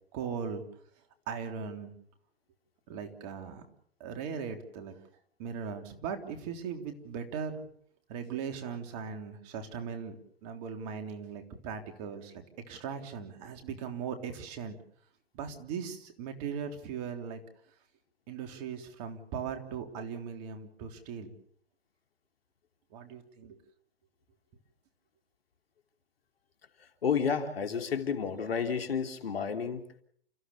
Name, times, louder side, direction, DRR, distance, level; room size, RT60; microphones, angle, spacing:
voice 1, 0.1-0.6 1.3-1.9 2.9-3.6 4.0-5.0 5.4-7.6 8.1-10.2 10.4-14.8 15.3-17.4 18.3-21.3 22.9-23.6, right 6 dB, 40° right, 6 dB, 3.5 m, -39 dB
voice 2, 27.0-29.9, left 6 dB, 75° left, 6 dB, 3.1 m, -31 dB
30.0 x 15.5 x 7.1 m, 0.66 s
hypercardioid pair, 125°, 30 cm